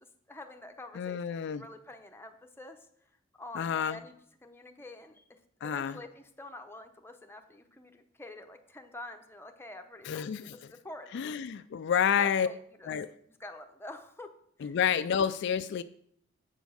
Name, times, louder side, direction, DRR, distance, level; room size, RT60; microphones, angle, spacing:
voice 1, 0.0-2.8 3.4-4.2 4.4-11.6 12.0-12.9 13.3-14.3 14.6-14.8, left 2 dB, 10° left, 5 dB, 0.8 m, -47 dB
voice 2, 1.0-1.6 3.6-4.0 5.6-6.0 10.1-10.5 11.1-12.5 12.9-13.1 14.6-15.8, left 8 dB, 60° left, 11 dB, 0.3 m, -29 dB
8.1 x 5.2 x 6.2 m, 0.69 s
head